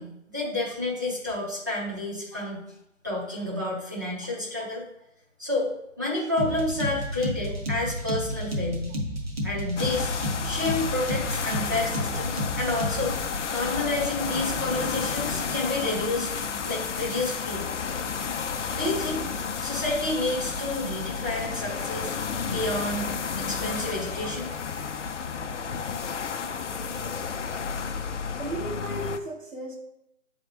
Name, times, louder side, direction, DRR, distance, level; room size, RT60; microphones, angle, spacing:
voice 1, 0.0-2.6 3.0-4.8 5.4-8.9 9.4-10.1 10.4-13.2 13.5-16.3 16.6-17.7 18.7-19.2 19.6-22.1 22.5-24.5, left 2 dB, 15° right, -6 dB, 0.6 m, -30 dB
sound 1, 6.4-13.2, equal, 50° right, 1.3 m, -31 dB
sound 2, 9.8-29.2, left 6 dB, 65° left, 0.6 m, -31 dB
voice 2, 28.4-29.8, right 2 dB, 80° right, -2 dB, 1.8 m, -36 dB
8.0 x 3.6 x 3.5 m, 0.81 s
figure-of-eight pair, 160°, 38 cm